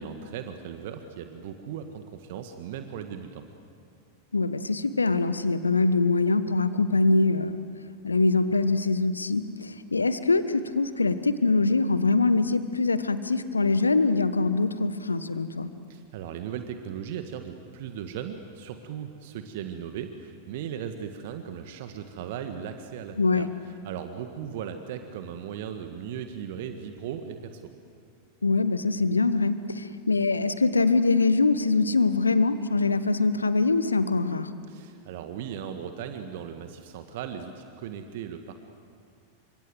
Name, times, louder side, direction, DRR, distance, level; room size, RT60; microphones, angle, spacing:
voice 1, 0.0-3.4 15.9-23.5 23.8-27.7 34.7-38.5, right 8 dB, 50° right, 7 dB, 1.7 m, -37 dB
voice 2, 4.3-7.6 8.0-15.7 23.2-23.5 28.4-34.5, left 3 dB, 80° left, 12 dB, 1.3 m, -23 dB
28.5 x 25.5 x 8.0 m, 2.4 s
figure-of-eight pair, 90°, 0 cm